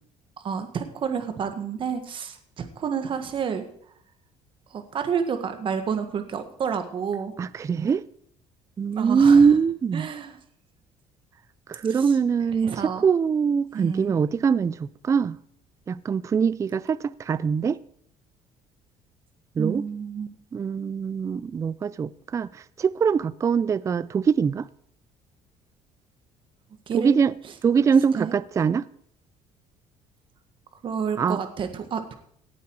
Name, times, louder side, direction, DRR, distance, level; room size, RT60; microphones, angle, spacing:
voice 1, 0.4-3.7 4.7-7.4 8.9-9.5 9.9-10.4 11.9-12.0 12.6-13.0 13.7-14.1 19.6-20.3 26.9-27.2 28.2-28.3 30.8-32.1, right 7 dB, 40° right, 1.6 m, -29 dB
voice 2, 7.4-8.0 8.8-10.1 11.7-15.4 15.9-17.8 19.6-19.9 20.5-24.7 26.9-27.3 27.6-28.9 31.2-31.4, right 6 dB, 25° right, 0.4 m, -22 dB
17.5 x 8.1 x 4.7 m
cardioid pair, 130°, 13 cm